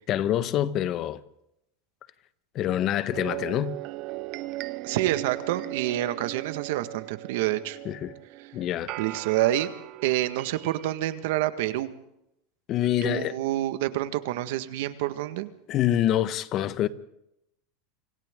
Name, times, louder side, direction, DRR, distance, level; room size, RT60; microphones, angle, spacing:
voice 1, 0.1-1.2 2.5-3.8 7.8-8.1 8.5-8.9 12.7-13.4 15.7-16.9, left 12 dB, 45° left, 1.3 m, -26 dB
sound 1, 3.1-11.2, right 20 dB, 55° right, 0.7 m, -38 dB
voice 2, 4.8-7.8 8.4-8.5 9.0-9.7 10.0-11.9 13.0-15.5, right 14 dB, 70° right, 1.7 m, -27 dB
29.0 x 26.5 x 3.8 m
supercardioid pair, 115°, 0 cm